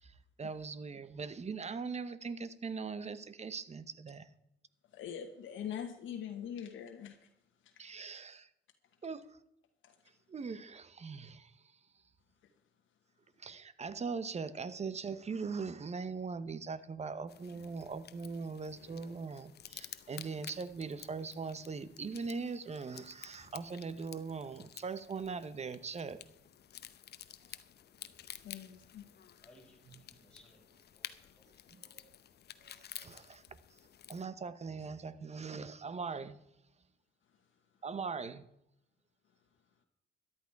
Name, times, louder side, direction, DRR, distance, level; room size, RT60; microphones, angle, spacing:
voice 1, 0.0-4.3 7.8-8.5 9.0-9.4 10.3-11.6 13.4-26.2 31.7-32.0 32.6-33.4 34.1-36.4 37.8-38.5, right 5 dB, 35° right, 0.9 m, -41 dB
voice 2, 4.9-7.3 7.6-7.9 9.8-10.0 12.4-12.5 28.4-29.1, left 9 dB, 75° left, 1.2 m, -43 dB
sound 1, 17.3-34.2, left 10 dB, 55° left, 0.8 m, -52 dB
voice 3, 29.4-31.5, left 1 dB, 5° left, 5.6 m, -63 dB
13.5 x 11.5 x 4.7 m
cardioid pair, 90°, 20 cm